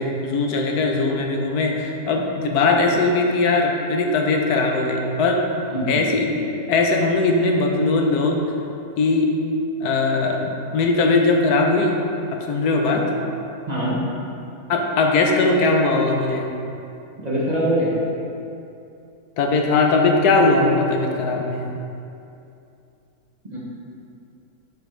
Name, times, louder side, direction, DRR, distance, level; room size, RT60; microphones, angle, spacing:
voice 1, 0.0-5.4 5.9-6.3 6.7-8.4 9.0-9.4 9.8-12.0 12.3-13.0 14.7-16.5 19.4-21.6, left 3 dB, 90° left, 1 dB, 1.3 m, -20 dB
voice 2, 13.7-14.0 17.2-17.9 23.5-23.6, right 1 dB, 30° right, -7 dB, 1.0 m, -22 dB
6.9 x 5.9 x 3.2 m, 2.7 s
omnidirectional pair, 1.6 m